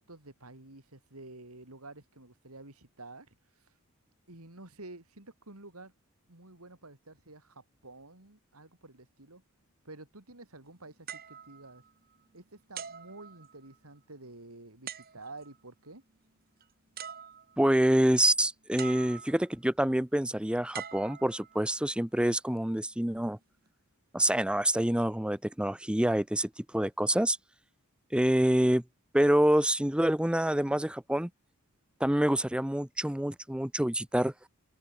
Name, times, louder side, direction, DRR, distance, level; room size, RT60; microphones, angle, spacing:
voice 1, 0.0-3.7 4.3-5.9 6.3-9.4 9.8-11.8 12.3-16.0, right 2 dB, 85° right, 4.6 m, -50 dB
sound 1, 11.1-12.3 12.8-13.9 14.9-15.6 16.6-16.7 17.0-17.8 18.8-19.6 20.7-21.9 22.6-22.8, right 8 dB, 45° right, 2.7 m, -44 dB
voice 2, 17.6-23.4 24.1-27.4 28.1-28.8 29.1-31.3 32.0-34.3, right 1 dB, 5° right, 0.6 m, -26 dB
open air
head